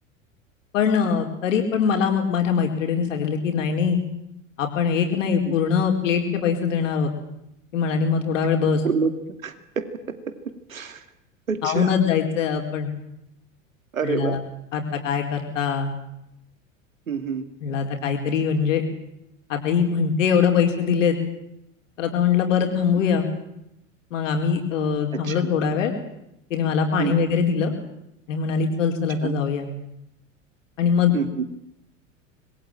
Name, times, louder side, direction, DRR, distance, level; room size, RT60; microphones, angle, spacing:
voice 1, 0.7-4.0 4.6-7.1 7.7-8.8 11.6-12.9 14.0-14.4 14.7-15.9 17.6-18.8 19.5-21.2 22.0-23.3 24.1-25.9 26.5-27.7 28.3-29.7 30.8-31.1, left 6 dB, 70° left, 3 dB, 4.4 m, -22 dB
voice 2, 8.8-9.9 10.7-11.0 11.5-11.9 13.9-14.4 17.1-17.4 25.1-25.4 27.0-27.1 29.2-29.3 31.1-31.4, right 5 dB, 85° right, 10 dB, 2.6 m, -27 dB
25.5 x 21.5 x 8.9 m, 0.83 s
figure-of-eight pair, 85°, 40 cm